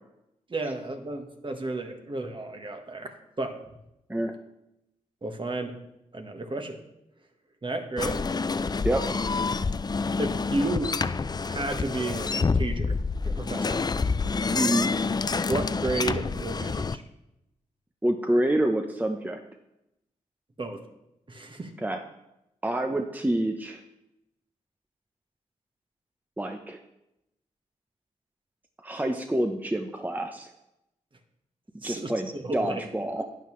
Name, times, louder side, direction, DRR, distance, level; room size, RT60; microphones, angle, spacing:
voice 1, 0.5-3.6 5.2-5.8 6.1-6.8 7.6-8.3 10.2-11.0 11.5-13.0 13.2-13.8 15.5-17.0 20.6-20.8 21.3-21.8 31.8-32.8, right 2 dB, 35° right, 4 dB, 1.5 m, -32 dB
sound 1, 8.0-17.0, left 4 dB, 30° left, 0.4 m, -28 dB
voice 2, 14.5-14.9 18.0-19.4 21.8-22.0 22.6-23.8 26.4-26.8 28.8-30.5 31.8-33.2, right 1 dB, 15° right, 4 dB, 0.9 m, -27 dB
11.5 x 9.0 x 3.2 m, 0.88 s
supercardioid pair, 50°, 14 cm